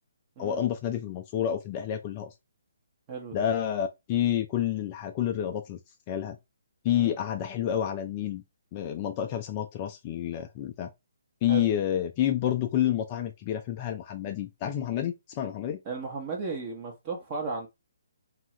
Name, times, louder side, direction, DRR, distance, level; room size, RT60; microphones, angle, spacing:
voice 1, 0.4-2.3 3.3-5.8 6.1-6.4 6.8-8.4 8.7-10.9 11.4-15.8, left 10 dB, 30° left, 0.3 m, -29 dB
voice 2, 3.1-3.5 6.9-7.1 11.5-11.6 15.8-17.7, right 4 dB, 30° right, 0.8 m, -35 dB
2.8 x 2.3 x 3.0 m
hypercardioid pair, 155°, 0 cm